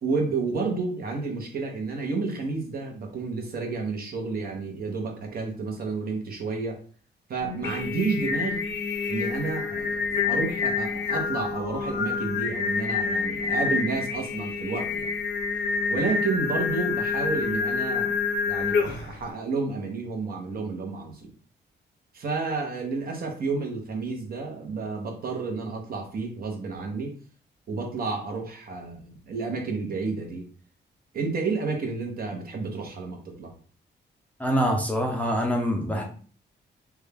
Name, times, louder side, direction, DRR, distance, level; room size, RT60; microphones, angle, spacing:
voice 1, 0.0-6.8 7.3-8.6 9.1-15.1 15.9-21.3 22.1-27.2 27.7-30.4 31.1-33.5, right 4 dB, 50° right, 2 dB, 0.9 m, -31 dB
Singing, 7.4-19.2, left 5 dB, 80° left, 0.8 m, -28 dB
voice 2, 34.4-36.0, equal, 10° left, 0 dB, 0.5 m, -25 dB
3.5 x 2.2 x 3.4 m, 0.42 s
cardioid pair, 140°, 19 cm